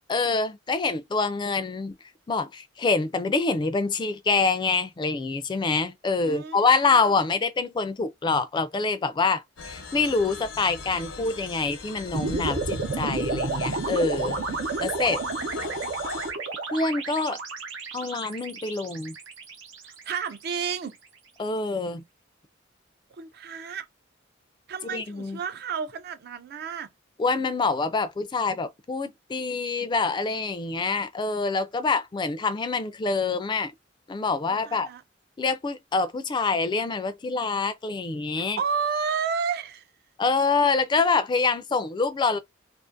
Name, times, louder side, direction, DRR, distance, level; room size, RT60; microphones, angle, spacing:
voice 1, 0.1-1.9 2.3-14.4 14.8-15.2 16.7-17.4 17.9-19.2 21.4-22.0 24.8-25.4 27.2-33.7 34.1-34.9 35.4-38.6 40.2-42.4, left 4 dB, 25° left, 0.3 m, -26 dB
voice 2, 6.2-6.8 15.2-15.9 19.8-21.0 23.1-23.9 24.7-26.9 34.6-35.0 38.4-39.8, right 6 dB, 55° right, 0.4 m, -31 dB
sound 1, 9.6-16.3, left 4 dB, 85° left, 0.7 m, -40 dB
sound 2, 12.1-20.4, right 3 dB, 90° right, 0.9 m, -31 dB
2.5 x 2.4 x 2.5 m
head